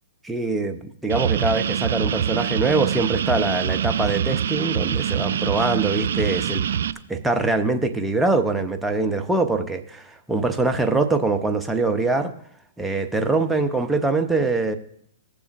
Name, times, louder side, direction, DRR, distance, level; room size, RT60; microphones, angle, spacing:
voice 1, 0.2-6.6 7.1-12.3 12.8-14.8, right 3 dB, 5° right, 6 dB, 0.7 m, -23 dB
sound 1, 1.1-6.9, right 9 dB, 70° right, 0.4 m, -24 dB
16.0 x 6.9 x 2.5 m, 0.66 s
hypercardioid pair, 130°, 0 cm